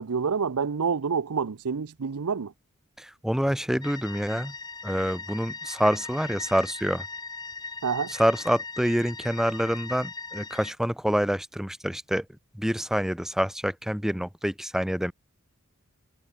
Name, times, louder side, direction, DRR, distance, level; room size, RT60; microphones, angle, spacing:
voice 1, 0.0-2.5 7.8-8.1, right 5 dB, 85° right, 0.6 m, -28 dB
voice 2, 3.0-4.5 4.8-7.0 8.1-12.3 12.5-15.1, equal, ahead, 0.9 m, -27 dB
sound 1, 3.8-10.7, left 4 dB, 20° left, 1.5 m, -39 dB
head